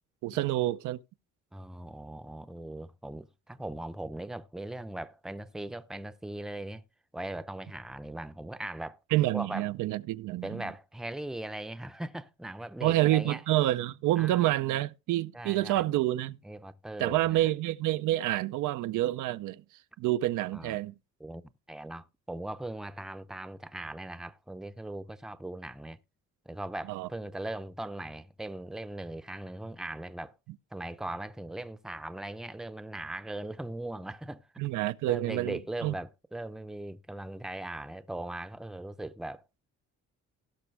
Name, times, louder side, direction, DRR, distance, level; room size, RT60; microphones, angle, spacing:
voice 1, 0.2-1.0 9.1-10.6 12.8-16.4 17.0-19.6 20.0-20.9 26.9-27.1 34.6-35.9, right 15 dB, 85° right, 0.5 m, -28 dB
voice 2, 1.5-6.8 7.1-9.0 9.3-9.7 10.4-13.4 14.2-14.8 15.3-15.9 16.4-17.5 20.5-20.8 21.2-26.0 26.5-30.4 30.7-34.5 35.0-39.4, right 1 dB, ahead, 0.6 m, -39 dB
17.0 x 6.0 x 3.3 m
cardioid pair, 90°, 30 cm